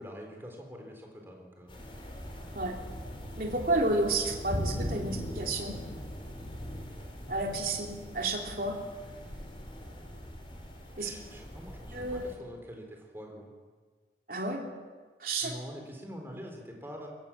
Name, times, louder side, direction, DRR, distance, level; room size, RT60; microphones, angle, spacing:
voice 1, 0.0-1.8 11.0-13.5 15.4-17.1, equal, 15° right, 1 dB, 4.0 m, -45 dB
sound 1, 1.7-12.4, equal, 30° left, 3.4 m, -40 dB
voice 2, 3.4-5.8 7.3-8.8 11.0-11.1 11.9-12.3 14.3-14.6 15.2-15.5, right 2 dB, 55° right, 0 dB, 3.4 m, -31 dB
23.5 x 16.0 x 7.5 m, 1.5 s
head